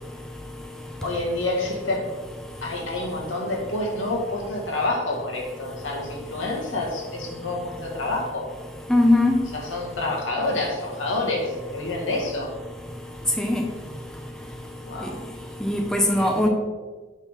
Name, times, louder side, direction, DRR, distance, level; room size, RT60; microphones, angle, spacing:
voice 1, 1.0-2.1 2.6-8.5 9.5-12.5 14.8-15.2 16.2-16.5, left 2 dB, 80° left, -1 dB, 1.8 m, -28 dB
voice 2, 8.9-9.3 13.4-13.6 15.6-16.5, left 1 dB, 5° left, 2 dB, 0.6 m, -19 dB
7.2 x 3.7 x 5.7 m, 1.4 s
head